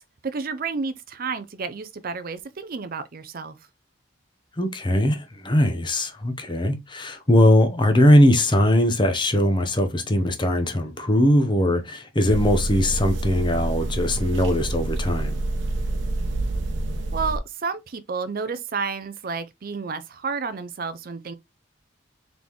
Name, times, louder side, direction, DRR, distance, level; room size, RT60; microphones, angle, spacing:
voice 1, 0.2-3.6 17.1-21.3, right 5 dB, 45° right, 0.5 m, -31 dB
voice 2, 4.6-15.4, left 1 dB, 25° left, 0.7 m, -20 dB
sound 1, 12.3-17.4, right 2 dB, 60° right, 0.9 m, -27 dB
4.1 x 3.6 x 3.0 m
head